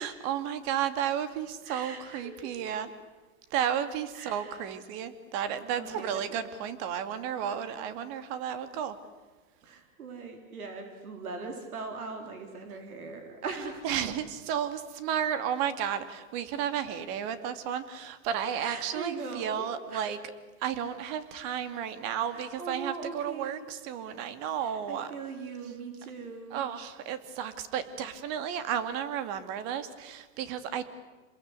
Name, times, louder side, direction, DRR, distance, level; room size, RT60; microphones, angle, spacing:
voice 1, 0.0-2.9 3.5-9.0 13.8-20.2 20.6-25.1 26.5-30.8, right 9 dB, 45° right, 11 dB, 2.5 m, -33 dB
voice 2, 1.6-2.7 4.1-4.6 5.8-6.4 9.6-14.1 18.6-20.1 22.3-23.6 24.6-26.7, right 4 dB, 85° right, 4 dB, 4.4 m, -40 dB
28.0 x 21.5 x 8.3 m, 1.3 s
hypercardioid pair, 130°, 43 cm